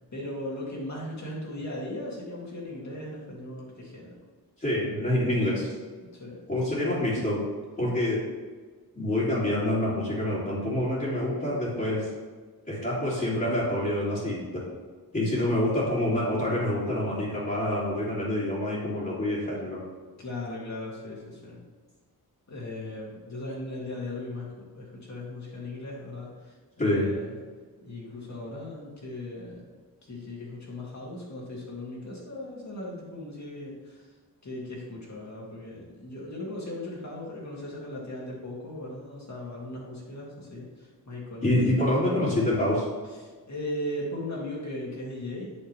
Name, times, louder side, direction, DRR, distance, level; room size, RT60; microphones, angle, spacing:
voice 1, 0.0-4.2 6.0-6.4 15.4-15.5 20.2-21.6 22.5-27.4 27.8-29.6 30.0-34.1 34.4-41.6 43.1-45.6, left 1 dB, 45° left, -3 dB, 2.4 m, -38 dB
voice 2, 4.6-5.7 6.5-7.4 7.8-8.2 8.9-12.1 12.7-14.6 15.1-19.8 26.8-27.1 41.4-42.8, left 1 dB, 25° left, -11 dB, 2.4 m, -26 dB
8.4 x 6.5 x 3.3 m, 1.5 s
wide cardioid pair, 125°, 38 cm